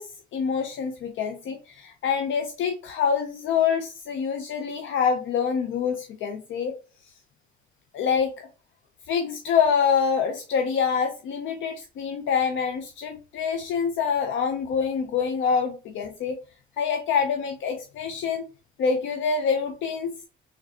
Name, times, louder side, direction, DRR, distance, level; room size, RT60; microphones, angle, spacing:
voice 1, 0.0-6.7 7.9-8.5 9.1-16.4 16.8-18.4 18.8-20.1, left 6 dB, 75° left, 5 dB, 0.6 m, -26 dB
4.0 x 3.2 x 2.7 m, 0.34 s
cardioid pair, 90°, 20 cm